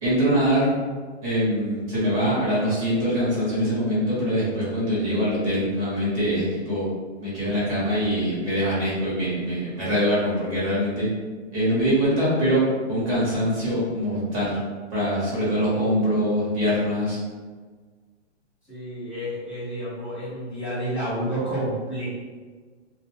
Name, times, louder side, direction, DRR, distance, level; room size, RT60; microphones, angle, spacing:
voice 1, 0.0-0.7 1.2-6.8 7.2-11.1 11.5-12.6 12.9-14.6 14.9-17.2, equal, 30° right, -8 dB, 1.0 m, -23 dB
voice 2, 18.7-22.1, right 1 dB, 5° right, -17 dB, 0.7 m, -30 dB
2.3 x 2.1 x 3.3 m, 1.5 s
hypercardioid pair, 165°, 35 cm